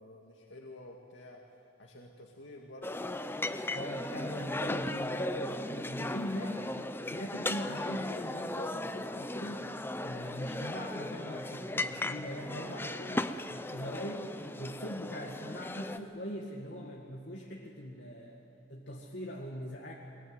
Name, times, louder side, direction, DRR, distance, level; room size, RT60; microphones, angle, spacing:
voice 1, 0.0-1.4 1.8-2.9, left 1 dB, 85° left, 0 dB, 2.1 m, -50 dB
sound 1, 2.8-16.0, left 1 dB, 10° left, 0.6 m, -37 dB
voice 2, 3.7-9.7 10.0-14.3 14.6-18.4 18.7-19.9, equal, 65° left, -2 dB, 2.1 m, -41 dB
22.5 x 21.0 x 9.4 m, 2.7 s
head